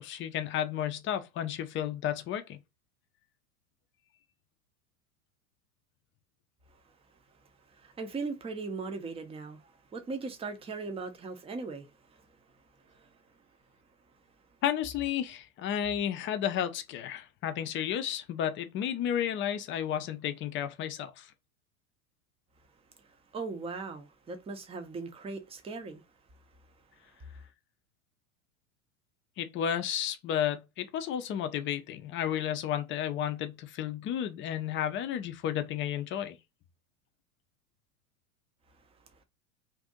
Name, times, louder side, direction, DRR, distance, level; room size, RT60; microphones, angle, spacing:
voice 1, 0.0-2.6 14.6-21.3 29.4-36.4, left 10 dB, 30° left, 0.5 m, -32 dB
voice 2, 7.7-12.4 12.8-13.2 23.0-26.0, right 4 dB, 15° right, 0.6 m, -39 dB
2.7 x 2.5 x 3.6 m
hypercardioid pair, 95°, 42 cm